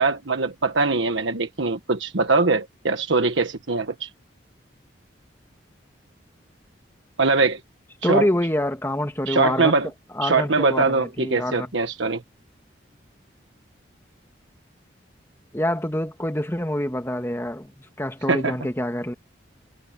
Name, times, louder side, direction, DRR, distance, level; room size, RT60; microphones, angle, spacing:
voice 1, 0.0-4.1 7.2-7.6 8.0-8.3 9.3-9.9 10.2-12.2 18.3-18.6, right 3 dB, 90° right, 1.4 m, -22 dB
voice 2, 8.0-9.7 10.1-11.7 15.5-19.1, left 1 dB, 15° left, 1.9 m, -26 dB
head